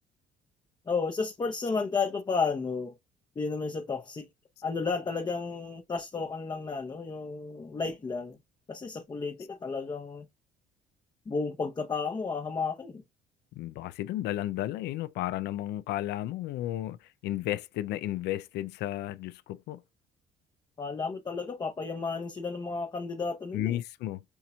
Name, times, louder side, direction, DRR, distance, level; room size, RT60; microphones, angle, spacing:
voice 1, 0.9-2.9 3.4-4.3 4.6-8.4 8.7-10.3 11.3-13.0 20.8-23.8, left 4 dB, 25° left, 0.8 m, -32 dB
voice 2, 13.6-19.8 23.5-24.2, left 14 dB, 80° left, 0.5 m, -33 dB
7.0 x 2.9 x 2.3 m
cardioid pair, 110°, 17 cm